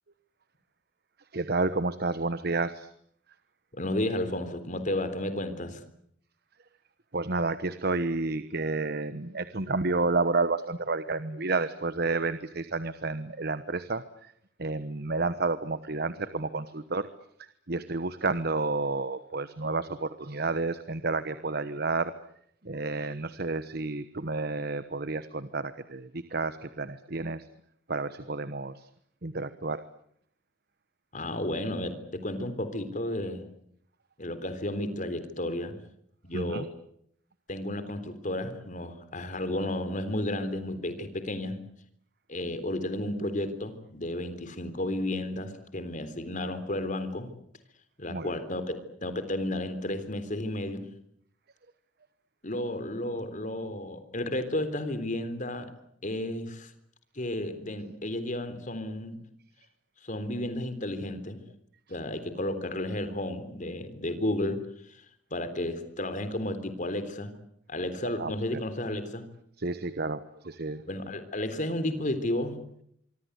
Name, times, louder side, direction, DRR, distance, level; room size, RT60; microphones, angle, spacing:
voice 1, 1.3-2.9 7.1-14.3 14.6-17.1 17.7-22.1 22.6-27.5 27.9-28.9 29.2-29.8 36.3-36.7 48.1-48.3 68.2-68.6 69.6-70.8, right 3 dB, 55° right, 12 dB, 1.2 m, -30 dB
voice 2, 3.7-5.8 31.1-33.5 34.2-35.8 36.2-36.7 37.5-41.6 42.3-47.3 48.0-50.9 52.4-55.7 56.0-56.7 57.2-59.2 60.0-61.4 61.9-64.6 64.9-65.0 65.3-67.3 67.7-69.3 70.9-72.8, left 1 dB, 40° left, 11 dB, 3.6 m, -32 dB
25.5 x 24.5 x 8.2 m, 0.70 s
head